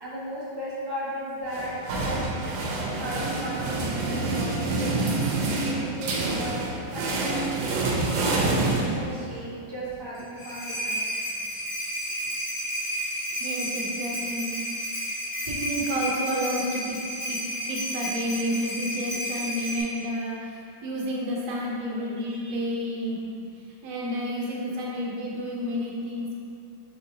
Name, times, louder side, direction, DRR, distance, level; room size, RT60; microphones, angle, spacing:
voice 1, 0.0-2.2 3.0-4.9 5.4-6.6 6.9-11.0 22.2-22.5, equal, 30° right, -8 dB, 0.4 m, -36 dB
sound 1, 1.5-9.4, right 2 dB, 90° right, 1.3 m, -27 dB
sound 2, 10.1-19.8, equal, 30° left, 1.2 m, -32 dB
voice 2, 13.4-14.7 15.5-23.3 23.8-26.3, equal, 70° right, -3 dB, 1.3 m, -30 dB
4.7 x 4.0 x 2.7 m, 2.4 s
omnidirectional pair, 2.0 m